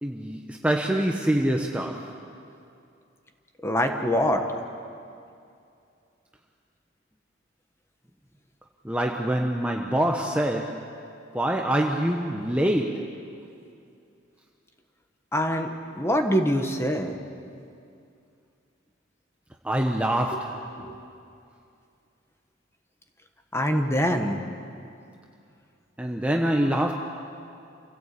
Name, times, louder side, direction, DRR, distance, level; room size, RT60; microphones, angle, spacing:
voice 1, 0.0-2.2 8.8-10.9 11.3-13.2 19.6-20.6 26.0-27.0, right 1 dB, 5° right, 1 dB, 1.0 m, -25 dB
voice 2, 3.6-4.4 15.3-15.7 16.0-17.1 20.8-21.0 23.5-24.4, equal, 15° left, 5 dB, 1.5 m, -24 dB
28.0 x 17.0 x 8.5 m, 2.5 s
head